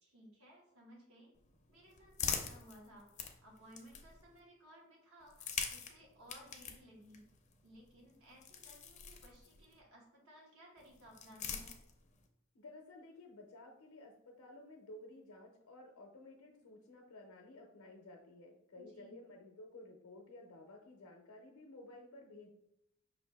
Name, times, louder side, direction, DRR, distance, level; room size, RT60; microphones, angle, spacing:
voice 1, 0.0-1.3 1.7-7.3 7.6-11.7 18.7-19.2, equal, 75° right, -3 dB, 1.6 m, -59 dB
sound 1, 1.3-4.4 5.2-9.8 10.8-12.3, left 7 dB, 35° left, 0.5 m, -45 dB
voice 2, 12.5-22.5, left 2 dB, 75° left, 1 dB, 0.6 m, -54 dB
5.5 x 2.5 x 3.4 m, 0.82 s
head